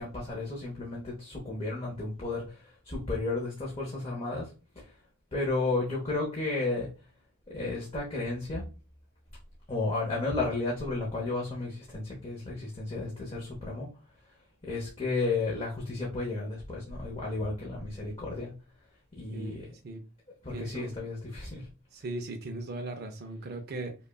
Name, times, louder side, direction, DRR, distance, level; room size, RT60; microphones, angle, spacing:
voice 1, 0.0-4.5 4.8-4.9 5.3-6.9 7.5-8.6 9.7-13.9 14.6-18.5 19.2-19.7 20.4-21.7, left 3 dB, 25° left, -3 dB, 0.8 m, -33 dB
voice 2, 19.3-20.0 20.5-20.9 21.9-23.9, right 2 dB, 45° right, 5 dB, 0.5 m, -38 dB
5.2 x 2.3 x 2.2 m, 0.34 s
head